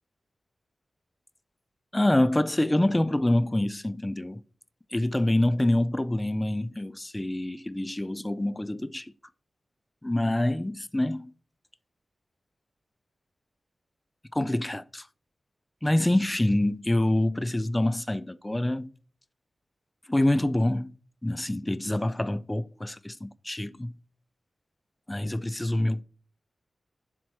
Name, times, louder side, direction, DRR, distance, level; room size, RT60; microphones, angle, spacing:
voice 1, 1.9-4.4 4.9-9.1 10.0-11.3 14.3-15.1 15.8-18.9 20.1-20.9 21.2-23.9 25.1-26.0, left 1 dB, 15° left, 0.3 m, -26 dB
7.4 x 2.9 x 4.6 m
wide cardioid pair, 140°, 0 cm